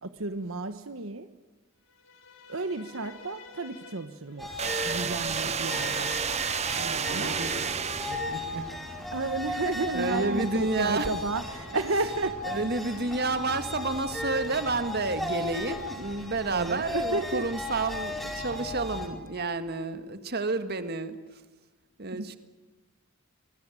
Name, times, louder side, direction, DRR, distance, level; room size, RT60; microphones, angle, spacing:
voice 1, 0.0-1.3 2.5-4.5 4.8-6.1 7.1-7.4 9.1-12.4 16.5-17.4 22.1-22.4, right 2 dB, 70° right, 9 dB, 1.3 m, -32 dB
sound 1, 1.9-17.4, left 3 dB, 70° left, 6.7 m, -52 dB
sound 2, 4.4-19.1, left 1 dB, ahead, 4.6 m, -36 dB
sound 3, 4.6-8.6, right 6 dB, 30° right, 1.2 m, -31 dB
voice 2, 6.7-8.7 9.9-11.2 11.7-12.1 12.4-21.4 22.0-22.4, right 3 dB, 50° right, 10 dB, 1.8 m, -31 dB
25.5 x 20.5 x 9.2 m, 1.2 s
head